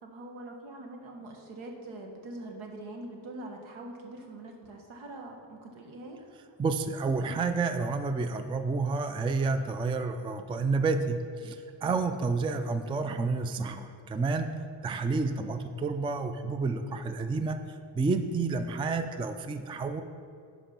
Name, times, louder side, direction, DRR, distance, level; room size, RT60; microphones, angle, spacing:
voice 1, 0.0-6.2 11.8-11.9, right 2 dB, 75° right, 2 dB, 1.6 m, -43 dB
voice 2, 6.6-14.5 14.8-20.0, right 4 dB, 15° right, 9 dB, 0.3 m, -30 dB
10.5 x 5.1 x 5.8 m, 2.4 s
cardioid pair, 115°, 48 cm